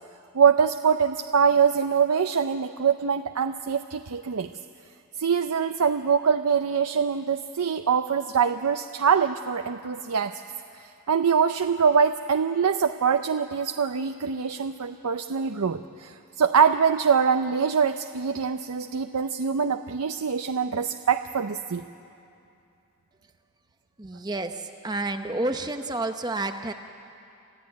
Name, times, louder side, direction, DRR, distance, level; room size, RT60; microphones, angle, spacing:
voice 1, 0.3-4.5 5.2-10.3 11.1-21.8, right 6 dB, 85° right, 7 dB, 0.6 m, -24 dB
voice 2, 24.0-26.7, right 2 dB, 20° right, 6 dB, 0.7 m, -30 dB
28.0 x 14.5 x 9.7 m, 2.6 s
head